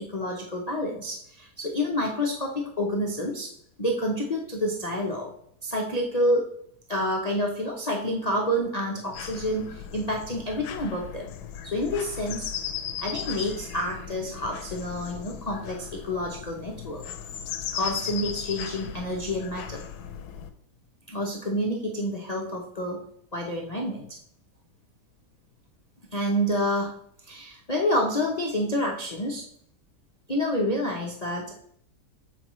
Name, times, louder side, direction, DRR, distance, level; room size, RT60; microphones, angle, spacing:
voice 1, 0.0-3.5 3.8-5.3 5.6-6.4 6.9-11.3 11.6-12.5 13.0-17.0 17.7-19.8 21.1-23.0 23.3-24.1 26.1-27.0 27.3-29.5 30.3-31.5, equal, 55° left, -1 dB, 0.4 m, -28 dB
sound 1, 9.1-20.5, left 8 dB, 75° left, 1.1 m, -37 dB
7.5 x 4.5 x 3.0 m, 0.68 s
omnidirectional pair, 1.8 m